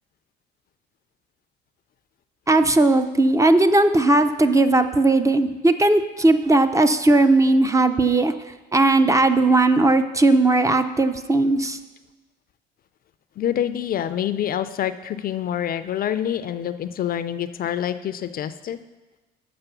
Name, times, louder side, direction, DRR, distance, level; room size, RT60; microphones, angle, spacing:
voice 1, 2.5-8.3 8.7-11.8, right 2 dB, 15° right, 9 dB, 0.5 m, -17 dB
voice 2, 13.4-18.8, left 10 dB, 45° left, 12 dB, 0.4 m, -26 dB
6.9 x 5.2 x 6.8 m, 1.2 s
supercardioid pair, 90°, 20 cm